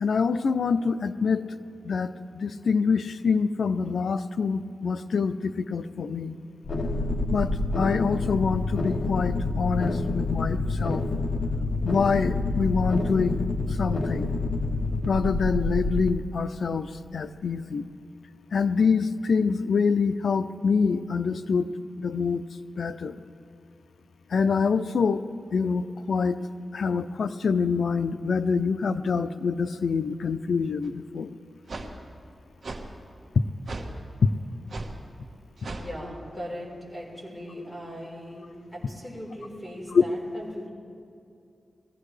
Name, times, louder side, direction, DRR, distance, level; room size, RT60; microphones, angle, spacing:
voice 1, 0.0-1.5 1.8-6.4 7.3-11.0 11.8-13.4 13.8-14.3 15.1-17.9 18.5-21.7 22.0-22.4 22.8-23.2 24.3-25.2 25.5-26.4 26.7-31.3 33.4-33.5 34.2-34.3 39.9-40.0, left 5 dB, 75° left, 10 dB, 0.5 m, -25 dB
sound 1, 6.6-16.1, left 2 dB, 50° left, 0.9 m, -28 dB
sound 2, 30.8-30.9 31.7-31.9 32.6-32.8 33.7-33.9 34.7-34.9 35.6-35.9, right 2 dB, 60° right, 1.3 m, -35 dB
voice 2, 35.5-38.4 38.7-40.7, equal, 5° left, -5 dB, 4.2 m, -39 dB
21.0 x 15.0 x 3.3 m, 2.6 s
wide cardioid pair, 125°, 0 cm